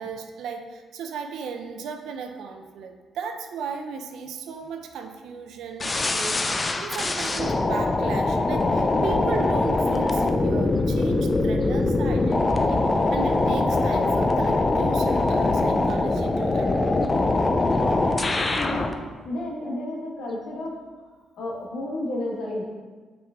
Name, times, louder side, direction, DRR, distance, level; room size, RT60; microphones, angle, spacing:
voice 1, 0.0-16.9, right 5 dB, 80° right, 5 dB, 0.6 m, -35 dB
sound 1, 5.8-18.9, left 2 dB, 25° left, 0.5 m, -23 dB
voice 2, 17.7-18.9 19.2-20.7 21.4-22.6, left 1 dB, 75° left, -2 dB, 1.5 m, -32 dB
6.0 x 5.0 x 3.7 m, 1.4 s
cardioid pair, 90°, 0 cm